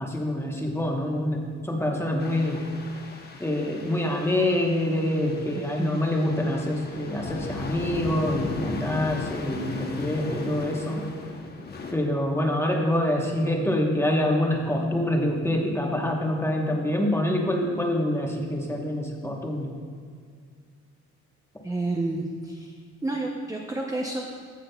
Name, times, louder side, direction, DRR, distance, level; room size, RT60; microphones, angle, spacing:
voice 1, 0.0-2.6 3.4-11.0 11.9-19.7, left 1 dB, 10° left, 0 dB, 1.0 m, -26 dB
sound 1, 2.2-11.9, left 3 dB, 35° left, 0.8 m, -37 dB
voice 2, 5.5-6.1 21.6-22.7 23.0-24.2, right 2 dB, 10° right, 0 dB, 0.5 m, -30 dB
14.5 x 6.1 x 2.2 m, 2.1 s
cardioid pair, 130°, 30 cm